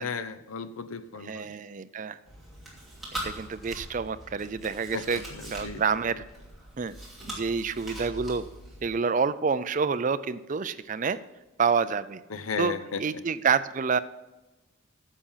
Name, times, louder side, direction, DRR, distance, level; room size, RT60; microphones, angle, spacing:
voice 1, 0.0-1.5 4.9-5.8 12.3-13.2, left 5 dB, 70° left, 12 dB, 0.7 m, -35 dB
voice 2, 1.2-2.2 3.1-5.2 5.5-6.2 6.8-6.9 7.3-8.4 8.8-11.2 11.6-12.2 12.6-12.7 13.0-14.0, right 5 dB, 35° right, 13 dB, 0.4 m, -28 dB
Chewing mastication, 2.3-8.9, right 1 dB, ahead, 2.7 m, -42 dB
10.0 x 7.3 x 5.6 m, 1.0 s
head